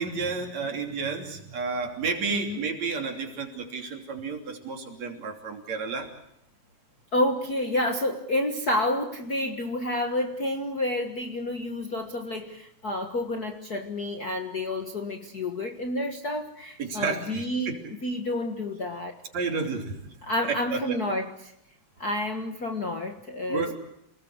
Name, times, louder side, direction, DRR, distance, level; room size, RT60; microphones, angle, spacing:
voice 1, 0.0-6.1 16.8-17.8 19.3-20.2 20.4-21.0 23.5-23.7, right 4 dB, 65° right, 3 dB, 4.3 m, -31 dB
voice 2, 2.3-2.6 7.1-17.7 18.0-19.2 20.2-21.5 22.0-23.7, left 1 dB, 40° left, 4 dB, 1.6 m, -29 dB
28.5 x 19.5 x 8.1 m, 0.79 s
omnidirectional pair, 3.4 m